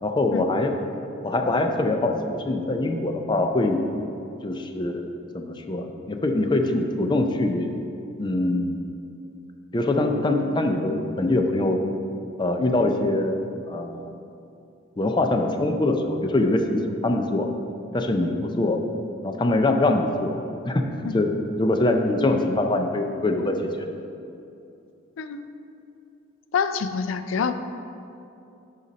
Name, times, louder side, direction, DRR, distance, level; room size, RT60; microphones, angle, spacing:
voice 1, 0.0-0.7 1.2-3.9 4.4-5.1 5.3-7.7 8.2-8.8 9.7-11.8 12.4-13.4 13.7-14.1 15.0-17.5 17.9-18.8 19.2-20.4 20.7-21.3 21.6-24.0, left 2 dB, 25° left, 4 dB, 0.5 m, -23 dB
voice 2, 25.2-25.5 26.5-27.6, left 6 dB, 80° left, 10 dB, 0.4 m, -26 dB
11.0 x 4.1 x 4.0 m, 2.7 s
head